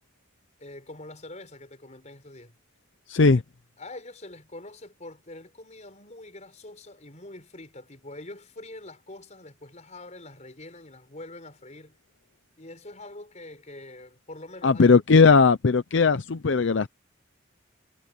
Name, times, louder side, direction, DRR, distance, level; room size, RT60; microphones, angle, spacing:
voice 1, 0.6-2.6 3.8-12.0 12.6-15.4, left 2 dB, 35° left, 5.3 m, -44 dB
voice 2, 3.1-3.4 14.6-16.9, left 4 dB, 65° left, 0.6 m, -18 dB
head